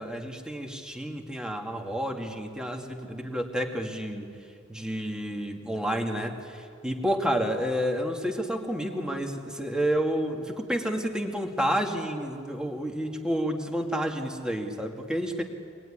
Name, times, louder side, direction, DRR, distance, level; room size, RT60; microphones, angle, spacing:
voice 1, 0.0-4.3 4.7-15.4, equal, 5° right, 2 dB, 2.1 m, -30 dB
24.5 x 20.0 x 10.0 m, 2.4 s
head